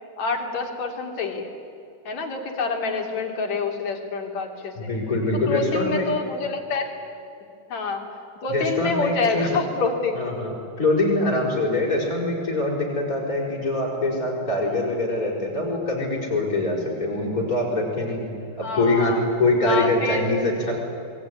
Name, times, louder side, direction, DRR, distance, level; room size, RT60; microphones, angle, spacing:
voice 1, 0.2-1.5 2.1-4.9 5.5-6.9 7.7-8.0 8.4-10.3 16.8-16.9 18.6-19.2 19.6-20.2, left 4 dB, 50° left, 3 dB, 3.9 m, -27 dB
voice 2, 4.8-6.1 8.5-9.6 10.1-18.3 18.6-20.7, left 2 dB, 20° left, -1 dB, 6.1 m, -24 dB
27.5 x 22.0 x 9.9 m, 2.6 s
omnidirectional pair, 4.3 m